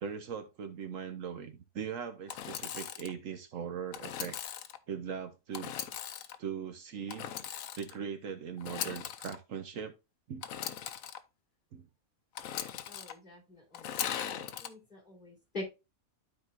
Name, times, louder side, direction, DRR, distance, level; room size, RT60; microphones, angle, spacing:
voice 1, 0.0-4.4 4.9-5.8 6.4-7.3 7.8-9.9 10.3-10.4 11.7-11.9, right 7 dB, 70° right, 1.2 m, -40 dB
Engine / Sawing, 2.3-3.1 3.9-4.8 5.5-6.4 7.1-8.0 8.6-9.4 10.4-11.2 12.4-13.1 13.7-14.7, left 10 dB, 70° left, 1.1 m, -39 dB
voice 2, 12.8-14.0 14.3-15.6, left 2 dB, 35° left, 3.9 m, -45 dB
12.5 x 4.3 x 2.4 m
omnidirectional pair, 1.5 m